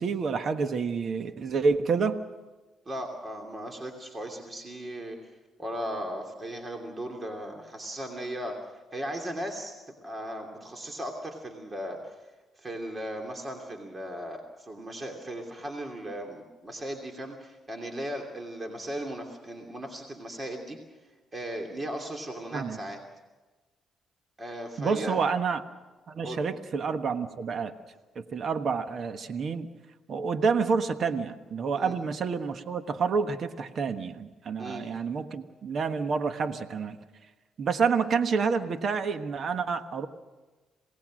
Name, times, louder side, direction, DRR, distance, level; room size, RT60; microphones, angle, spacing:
voice 1, 0.0-2.2 22.5-22.8 24.8-25.6 26.1-27.7 28.1-29.7 30.1-37.0 37.6-40.1, right 5 dB, 55° right, 9 dB, 1.3 m, -28 dB
voice 2, 2.9-5.2 5.6-12.3 12.6-20.8 21.3-23.0 24.4-25.2 26.2-26.4 31.7-32.0 34.6-34.9, equal, 30° right, 2 dB, 2.8 m, -37 dB
27.5 x 18.5 x 6.3 m, 1.2 s
cardioid pair, 90°, 0 cm